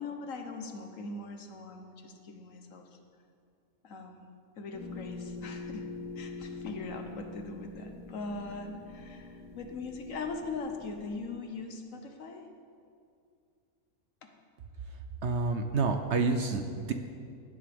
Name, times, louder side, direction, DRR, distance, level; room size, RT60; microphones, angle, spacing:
voice 1, 0.0-2.9 3.8-4.3 4.6-5.9 6.2-12.5 14.2-14.3, left 3 dB, 65° left, 4 dB, 1.3 m, -41 dB
sound 1, 4.7-11.2, left 3 dB, 90° left, 2.2 m, -44 dB
voice 2, 15.2-16.9, right 4 dB, 60° right, 6 dB, 0.9 m, -28 dB
16.0 x 10.5 x 3.5 m, 2.4 s
omnidirectional pair, 1.5 m